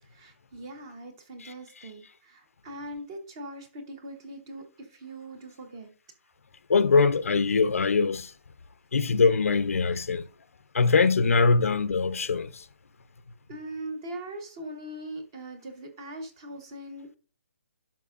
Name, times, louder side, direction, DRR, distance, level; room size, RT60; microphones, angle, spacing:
voice 1, 0.1-5.9 13.5-17.2, right 1 dB, 20° right, 0.9 m, -41 dB
voice 2, 6.7-8.3 8.9-10.2 10.7-12.5, left 4 dB, 75° left, 0.6 m, -22 dB
11.0 x 5.9 x 2.5 m
hypercardioid pair, 180°, 8 cm